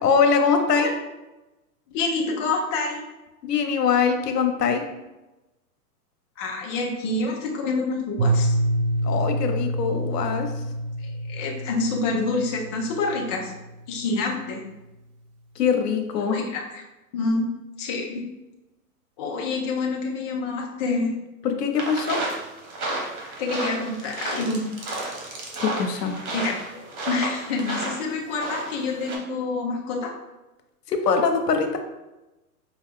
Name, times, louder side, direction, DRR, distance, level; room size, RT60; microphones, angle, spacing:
voice 1, 0.0-0.9 3.4-4.8 9.0-10.5 15.6-16.4 21.4-22.2 25.6-26.2 30.9-31.8, left 6 dB, 90° left, 5 dB, 0.8 m, -22 dB
voice 2, 1.9-3.0 6.4-8.5 11.0-13.5 13.9-14.6 16.3-16.8 17.1-17.5 17.8-18.2 19.2-21.1 23.4-24.6 26.3-26.6 27.1-30.1, left 3 dB, 20° left, -1 dB, 0.3 m, -27 dB
Piano, 8.2-13.8, right 1 dB, 50° right, 0.8 m, -27 dB
sound 1, 21.7-29.2, right 2 dB, 65° right, 1.5 m, -32 dB
4.9 x 2.3 x 3.6 m, 1.0 s
hypercardioid pair, 125°, 47 cm